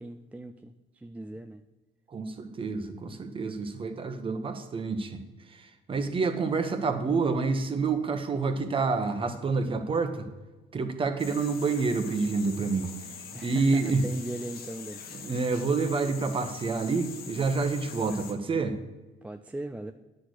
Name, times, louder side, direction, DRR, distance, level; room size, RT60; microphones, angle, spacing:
voice 1, 0.0-1.6 13.3-15.0 19.2-19.9, right 1 dB, 10° right, 7 dB, 0.3 m, -39 dB
voice 2, 2.1-5.2 5.5-10.3 10.7-12.9 13.4-14.0 15.2-18.8, right 4 dB, 30° right, 7 dB, 1.0 m, -28 dB
sound 1, 11.2-18.3, left 6 dB, 65° left, 1.2 m, -43 dB
9.7 x 4.3 x 6.4 m, 1.2 s
cardioid pair, 110°, 17 cm